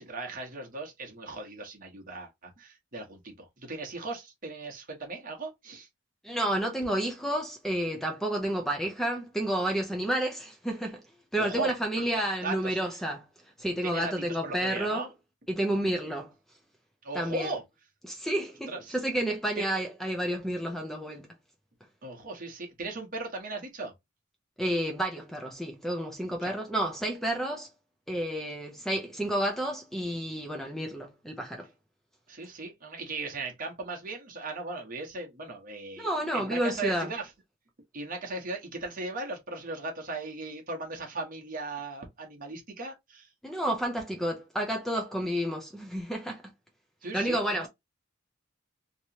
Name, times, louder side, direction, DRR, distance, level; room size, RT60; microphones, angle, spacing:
voice 1, 0.0-5.9 11.4-12.0 12.4-12.8 13.8-15.1 17.0-17.6 18.7-18.9 19.6-19.7 22.0-23.9 26.4-26.5 32.3-37.3 37.9-43.3 47.0-47.7, right 3 dB, 40° right, 1.2 m, -37 dB
voice 2, 6.2-11.0 11.3-13.2 13.6-15.1 15.5-16.3 17.1-17.5 18.1-21.3 24.6-27.7 28.1-31.7 36.0-37.1 43.4-46.4 47.1-47.7, right 1 dB, ahead, 0.5 m, -30 dB
3.1 x 2.9 x 2.8 m
head